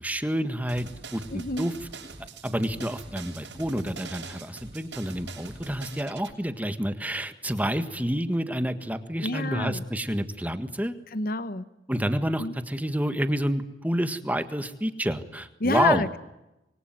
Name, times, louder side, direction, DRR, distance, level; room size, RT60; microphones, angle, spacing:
voice 1, 0.0-1.7 2.4-11.0 11.9-16.0, equal, 10° right, 10 dB, 1.6 m, -29 dB
sound 1, 0.7-6.3, right 4 dB, 85° right, 8.0 m, -43 dB
voice 2, 1.3-1.7 9.2-9.8 11.1-11.6 12.4-12.5 15.6-16.2, left 2 dB, 55° left, 14 dB, 1.0 m, -28 dB
26.0 x 23.0 x 9.3 m, 0.93 s
head